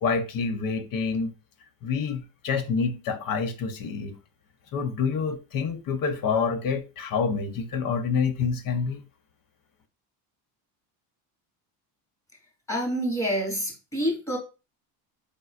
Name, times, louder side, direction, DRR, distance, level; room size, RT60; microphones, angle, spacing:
voice 1, 0.0-1.3 1.8-4.2 4.7-9.0, left 5 dB, 45° left, 0.9 m, -27 dB
voice 2, 12.7-14.4, equal, 5° left, 2.5 m, -27 dB
5.1 x 3.8 x 2.4 m
supercardioid pair, 90°, 48 cm